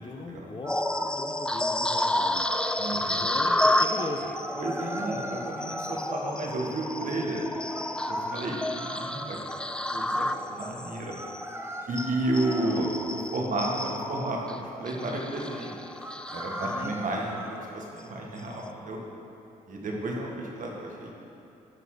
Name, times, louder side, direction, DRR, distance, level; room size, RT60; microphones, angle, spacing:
voice 1, 0.0-2.4 3.0-4.4 8.1-8.6 13.5-14.1 16.6-17.0, left 2 dB, 30° left, 3 dB, 0.8 m, -40 dB
sound 1, 0.6-1.2 4.4-6.1 7.7-9.5 11.1-12.9 16.0-17.7, right 1 dB, 15° right, 0.9 m, -42 dB
sound 2, 0.7-17.3 17.8-18.0 18.5-18.7, left 1 dB, 5° left, 0.3 m, -31 dB
voice 2, 2.8-3.2 4.6-7.4 8.1-9.4 9.9-11.2 11.9-15.7 16.3-19.0 19.7-21.1, right 1 dB, 55° right, -1 dB, 1.5 m, -32 dB
11.5 x 4.1 x 4.8 m, 2.8 s
supercardioid pair, 65°, 16 cm